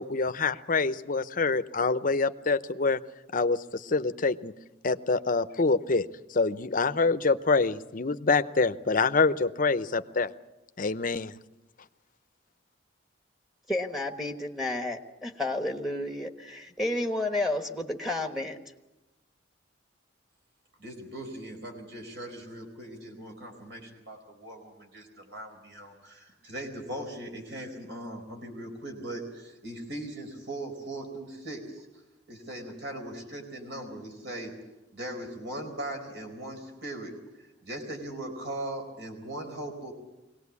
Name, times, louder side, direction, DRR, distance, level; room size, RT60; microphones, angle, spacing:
voice 1, 0.0-3.0 3.3-4.5 4.8-6.1 6.3-10.3 10.8-11.3, left 4 dB, 45° left, 11 dB, 0.7 m, -26 dB
voice 2, 13.7-18.6, left 1 dB, ahead, 4 dB, 1.3 m, -31 dB
voice 3, 20.8-31.9 32.3-34.5 34.9-39.9, right 1 dB, 65° right, 3 dB, 4.5 m, -39 dB
23.0 x 18.5 x 8.4 m, 1.0 s
head